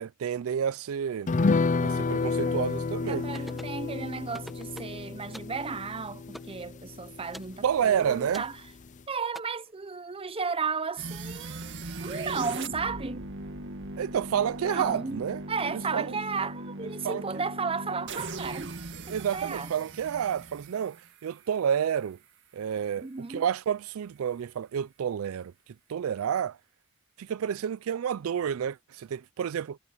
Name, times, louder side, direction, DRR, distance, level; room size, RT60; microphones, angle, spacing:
voice 1, 0.0-1.3 1.8-3.2 7.6-8.4 14.0-15.4 15.7-16.2 17.0-17.2 19.1-22.2 22.5-25.5 25.9-26.6 27.2-29.8, right 8 dB, 80° right, 0.4 m, -30 dB
sound 1, 1.3-8.1 8.4-8.5 8.8-9.0, left 4 dB, 35° left, 0.5 m, -30 dB
voice 2, 2.2-2.6 3.1-8.6 9.1-13.3 14.6-18.8 19.1-19.7 23.0-23.5, right 5 dB, 25° right, 0.7 m, -34 dB
sound 2, 3.3-3.8 4.3-5.0 5.3-5.6 6.3-6.6 7.3-7.6 8.3-8.6 9.3-9.4, equal, ahead, 1.2 m, -44 dB
sound 3, 11.0-21.9, right 2 dB, 60° right, 2.1 m, -39 dB
head